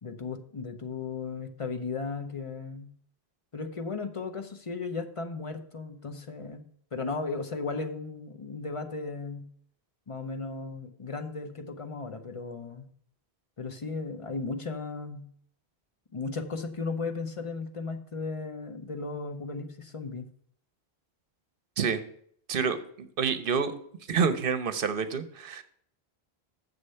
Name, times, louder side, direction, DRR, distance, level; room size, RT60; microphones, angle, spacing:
voice 1, 0.0-2.9 3.5-6.6 6.9-9.5 10.1-12.9 13.6-15.3 16.1-20.3, left 4 dB, 35° left, 7 dB, 0.7 m, -36 dB
voice 2, 22.5-23.7 24.1-25.6, right 6 dB, 60° right, 11 dB, 0.9 m, -28 dB
7.1 x 6.6 x 5.5 m, 0.63 s
omnidirectional pair, 1.1 m